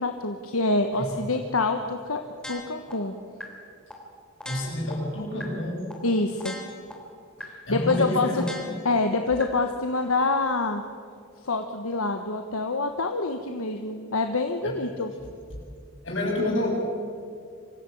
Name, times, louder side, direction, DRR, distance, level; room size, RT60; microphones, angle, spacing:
voice 1, 0.0-2.2 2.5-3.1 6.0-6.6 7.4-8.4 8.8-10.8 11.4-15.1, left 3 dB, 80° left, 5 dB, 1.3 m, -26 dB
sound 1, 2.4-2.9 3.4-3.5 3.9-4.0 4.4-4.9 5.4-5.5 5.9-6.0 6.4-6.9 7.4-7.5 7.9-8.0 8.4-8.9 9.4-9.5, left 1 dB, 5° left, 3.1 m, -38 dB
voice 2, 4.4-5.8 7.7-8.6 14.6-14.7 16.0-16.7, left 1 dB, 55° left, -2 dB, 7.7 m, -28 dB
25.0 x 15.5 x 8.6 m, 2.4 s
head